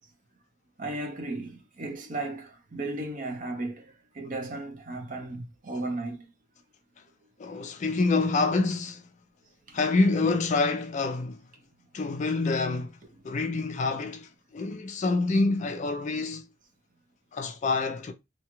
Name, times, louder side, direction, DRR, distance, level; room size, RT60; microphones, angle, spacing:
voice 1, 0.8-6.3 9.7-9.8, right 2 dB, 40° right, 0.7 m, -35 dB
voice 2, 7.4-9.0 9.7-11.4 11.9-12.9 13.2-16.4 17.3-18.1, left 3 dB, 35° left, 0.3 m, -27 dB
2.8 x 2.3 x 2.9 m
head